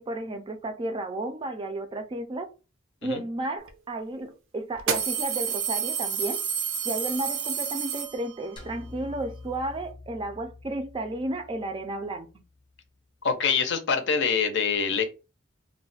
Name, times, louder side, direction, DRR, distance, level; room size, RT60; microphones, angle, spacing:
voice 1, 0.0-2.5 3.0-6.4 6.8-12.3, right 1 dB, 25° right, 0.4 m, -33 dB
sound 1, 3.7-3.8 4.8-8.6, right 7 dB, 90° right, 0.5 m, -29 dB
sound 2, 8.6-12.9, left 2 dB, 25° left, 0.6 m, -47 dB
voice 2, 13.2-15.1, left 6 dB, 65° left, 0.6 m, -25 dB
2.3 x 2.1 x 3.9 m
head